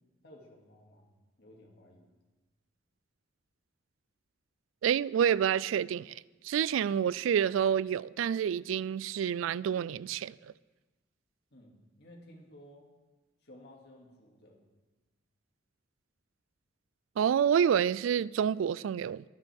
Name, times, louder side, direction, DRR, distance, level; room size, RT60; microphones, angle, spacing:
voice 1, 0.2-1.1 1.4-2.1 11.5-12.9 13.4-14.6, left 1 dB, 60° left, 2.3 m, -55 dB
voice 2, 4.8-10.3 17.2-19.2, right 8 dB, 85° right, 0.3 m, -28 dB
22.5 x 8.9 x 3.5 m
head